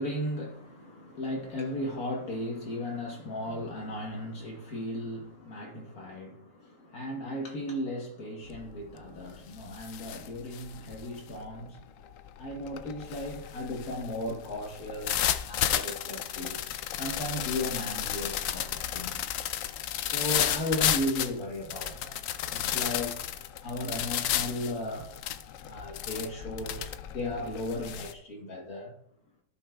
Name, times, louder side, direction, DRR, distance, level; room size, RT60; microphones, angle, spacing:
voice 1, 0.0-11.8 12.4-16.6 16.9-19.3 20.1-22.2 22.5-23.2 23.6-25.1 25.6-28.9, left 1 dB, 60° left, 1.6 m, -36 dB
sound 1, 8.5-8.8 9.2-28.1, left 11 dB, 75° left, 0.7 m, -33 dB
15.5 x 5.7 x 2.2 m
omnidirectional pair, 1.9 m